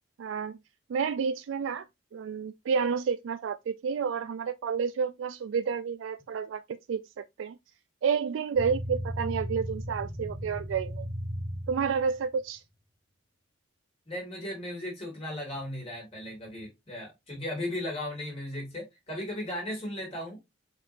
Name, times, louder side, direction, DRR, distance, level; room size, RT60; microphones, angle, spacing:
voice 1, 0.2-0.6 0.9-1.9 2.1-6.6 6.9-7.6 8.0-11.1 11.7-12.6, right 6 dB, 75° right, 0.3 m, -30 dB
sound 1, 8.6-12.3, equal, 20° right, 1.3 m, -36 dB
voice 2, 14.1-20.4, left 1 dB, 30° left, 2.1 m, -36 dB
4.7 x 4.3 x 2.5 m
head